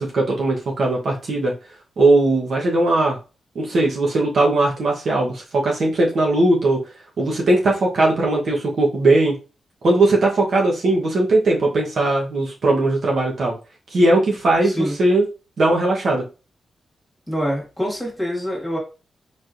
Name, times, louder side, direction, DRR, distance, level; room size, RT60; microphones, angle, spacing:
voice 1, 0.0-1.5 2.0-3.2 3.5-6.8 7.2-9.4 9.8-13.5 13.9-15.2 15.6-16.2, right 2 dB, 60° right, -1 dB, 1.0 m, -19 dB
voice 2, 14.6-14.9 17.3-18.8, equal, 5° left, -2 dB, 1.6 m, -25 dB
4.2 x 3.1 x 2.5 m, 0.32 s
wide cardioid pair, 135°, 0 cm